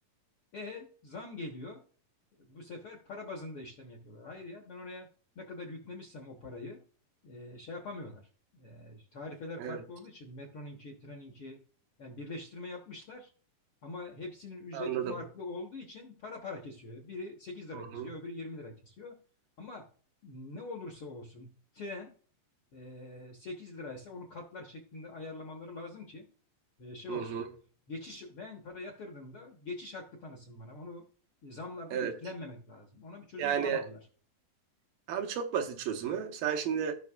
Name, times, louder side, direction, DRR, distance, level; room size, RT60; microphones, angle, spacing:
voice 1, 0.5-1.8 2.4-5.1 5.3-6.8 7.2-11.6 12.0-13.3 13.8-19.1 19.6-19.9 20.2-22.1 22.7-26.2 26.8-27.4 27.9-31.0 31.4-34.0, left 2 dB, 60° left, 1.4 m, -44 dB
voice 2, 14.7-15.2 17.7-18.1 27.1-27.5 31.9-32.1 33.4-33.9 35.1-36.9, right 8 dB, 80° right, 2.6 m, -32 dB
16.0 x 5.9 x 2.4 m
omnidirectional pair, 4.1 m